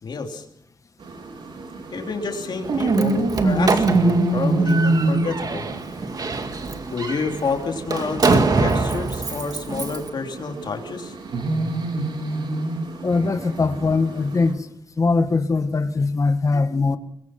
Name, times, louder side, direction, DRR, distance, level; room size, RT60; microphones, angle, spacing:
voice 1, 0.0-0.4 1.9-5.6 6.9-11.1, left 4 dB, 60° left, 3 dB, 3.1 m, -29 dB
sound 1, 1.0-14.5, right 2 dB, 70° right, 4.3 m, -26 dB
Slam, 2.6-10.1, right 3 dB, 50° right, 2.2 m, -25 dB
voice 2, 13.0-14.7 15.0-17.0, left 3 dB, 40° left, 9 dB, 1.8 m, -21 dB
23.5 x 21.5 x 5.9 m, 0.69 s
cardioid pair, 95°, 8 cm